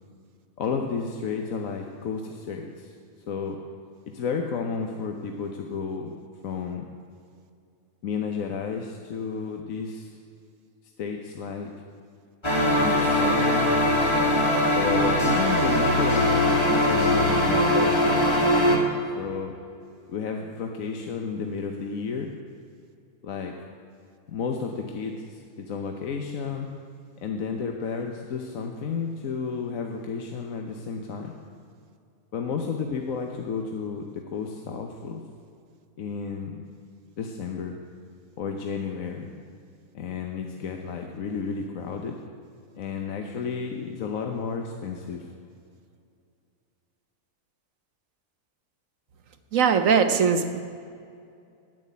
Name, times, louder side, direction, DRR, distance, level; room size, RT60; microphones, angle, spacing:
voice 1, 0.6-2.9 3.3-3.6 4.1-6.1 6.4-6.9 8.0-10.1 11.0-11.7 12.8-13.7 14.8-18.3 19.2-19.5 20.1-22.3 23.2-23.5 24.3-26.7 27.2-31.4 32.3-35.2 36.0-36.6 37.2-37.8 38.4-39.3 39.9-42.2 42.7-45.3, left 5 dB, 65° left, 3 dB, 1.3 m, -32 dB
sound 1, 12.4-18.8, left 1 dB, 20° left, 1.6 m, -21 dB
voice 2, 49.5-50.6, right 6 dB, 65° right, 8 dB, 1.2 m, -20 dB
10.5 x 9.2 x 9.4 m, 2.4 s
omnidirectional pair, 1.6 m